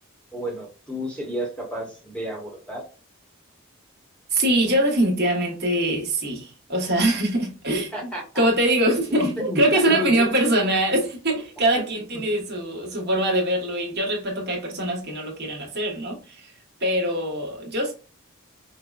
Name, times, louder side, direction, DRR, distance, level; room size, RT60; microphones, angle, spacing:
voice 1, 0.3-2.9 7.9-8.5 9.1-10.3, equal, 5° left, 1.0 m, -31 dB
voice 2, 4.3-16.4 16.8-17.9, right 1 dB, 50° right, 1.3 m, -23 dB
5.3 x 2.2 x 2.3 m
head